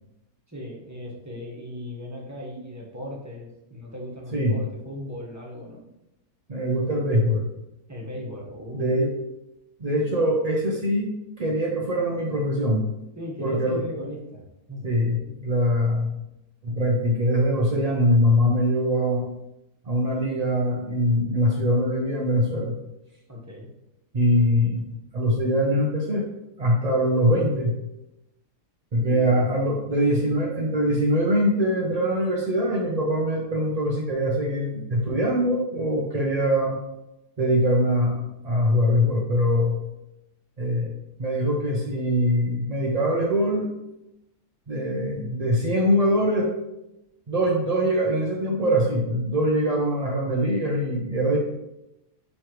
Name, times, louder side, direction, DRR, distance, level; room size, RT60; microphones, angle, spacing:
voice 1, 0.5-5.8 7.9-9.0 13.1-14.4 14.7-14.8 23.3-23.7 29.0-29.6 49.6-49.8, left 1 dB, 10° right, -3 dB, 1.1 m, -37 dB
voice 2, 6.5-7.4 8.7-9.1 9.8-11.1 11.4-12.8 13.4-13.8 14.8-16.2 16.6-19.3 19.9-22.7 24.1-24.8 25.1-26.2 26.6-27.7 28.9-36.8 37.4-39.8 40.6-40.9 41.2-43.7 44.7-46.5 47.3-51.4, equal, 55° right, -2 dB, 0.4 m, -23 dB
9.4 x 3.3 x 3.1 m, 0.91 s
omnidirectional pair, 1.8 m